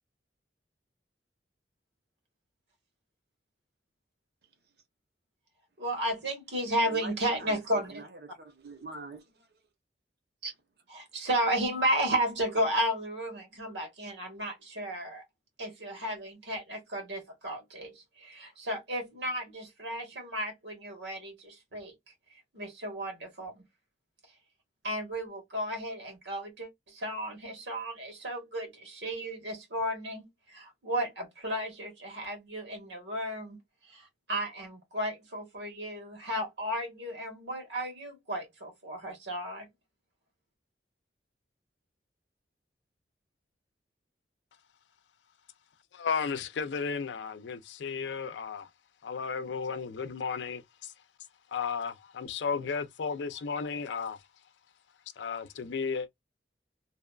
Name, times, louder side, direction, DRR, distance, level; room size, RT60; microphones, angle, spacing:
voice 1, 5.8-8.0 11.1-15.2 15.6-21.9 22.5-23.6 24.8-33.6 33.9-39.7, right 1 dB, 90° right, 1.4 m, -33 dB
voice 2, 6.8-9.5 10.4-10.5, right 3 dB, 60° right, 0.8 m, -44 dB
voice 3, 45.9-48.7 49.0-50.9 51.5-54.2 55.2-56.1, left 5 dB, 90° left, 0.4 m, -34 dB
2.8 x 2.2 x 2.3 m
head